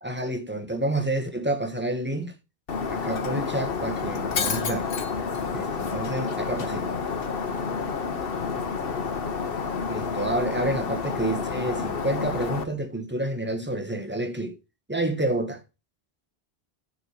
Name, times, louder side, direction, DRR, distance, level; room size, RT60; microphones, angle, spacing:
voice 1, 0.0-2.3 2.9-4.9 5.5-6.9 9.9-14.5 14.9-15.6, right 1 dB, 10° right, 1.1 m, -29 dB
Shatter, 2.7-12.6, left 5 dB, 65° left, 1.2 m, -29 dB
8.5 x 4.7 x 6.4 m
omnidirectional pair, 1.0 m